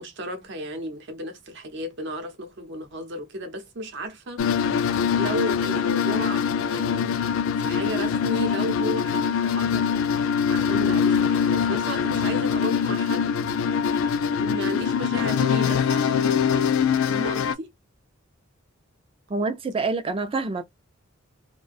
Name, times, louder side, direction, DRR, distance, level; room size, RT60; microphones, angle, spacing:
voice 1, 0.0-4.4 4.7-7.2 7.6-10.0 10.5-17.7, equal, 60° right, 0.7 m, -34 dB
sound 1, 4.4-17.6, left 7 dB, 85° left, 0.3 m, -23 dB
voice 2, 19.3-20.6, right 3 dB, 25° right, 0.3 m, -26 dB
2.4 x 2.1 x 2.5 m
head